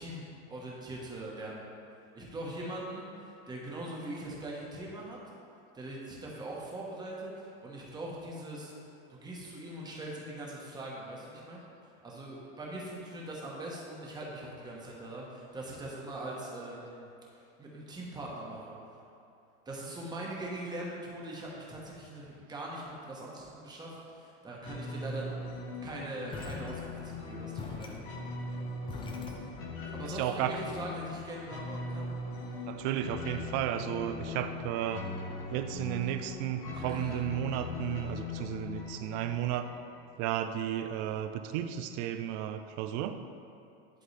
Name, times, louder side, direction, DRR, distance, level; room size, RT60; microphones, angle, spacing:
voice 1, 0.0-1.6 2.1-5.2 5.7-8.7 9.1-11.6 12.0-17.1 17.4-18.8 19.6-25.3 25.8-27.9 29.9-32.1 36.7-37.1, right 1 dB, 15° right, -4 dB, 1.1 m, -41 dB
sound 1, 24.6-40.1, left 3 dB, 40° left, 1.0 m, -40 dB
sound 2, 26.3-29.8, left 3 dB, 15° left, 0.5 m, -44 dB
voice 2, 30.1-30.6 32.7-35.1 35.5-39.7 40.2-43.2, right 10 dB, 55° right, 9 dB, 0.4 m, -33 dB
11.0 x 3.8 x 3.3 m, 2.7 s
supercardioid pair, 145°, 31 cm